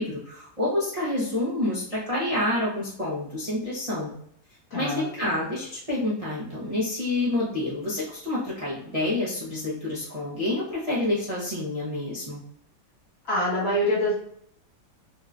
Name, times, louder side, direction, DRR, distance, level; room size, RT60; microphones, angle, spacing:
voice 1, 0.0-4.1 4.7-12.4, left 1 dB, 30° right, -9 dB, 0.6 m, -28 dB
voice 2, 4.7-5.1 13.2-14.1, left 1 dB, 50° left, -6 dB, 1.6 m, -25 dB
3.7 x 2.8 x 2.4 m, 0.68 s
omnidirectional pair, 2.0 m